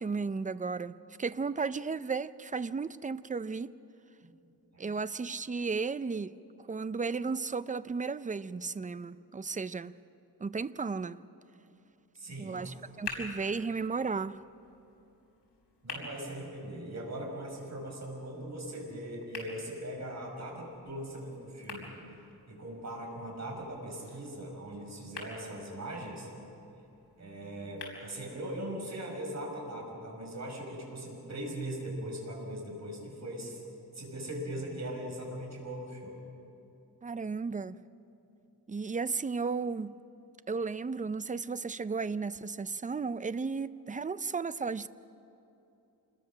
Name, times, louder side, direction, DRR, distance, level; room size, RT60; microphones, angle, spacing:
voice 1, 0.0-3.7 4.8-6.3 6.7-10.0 10.4-11.2 12.4-14.4 37.0-37.8 38.7-40.0 40.5-44.9, right 4 dB, 20° right, 0.4 m, -34 dB
voice 2, 12.1-12.7 13.1-13.2 15.8-21.9 22.5-26.3 27.2-33.6 33.9-36.2, right 1 dB, 45° right, 6.0 m, -40 dB
sound 1, 12.6-28.6, left 4 dB, 80° left, 4.9 m, -49 dB
27.0 x 21.5 x 6.3 m
wide cardioid pair, 120°, 39 cm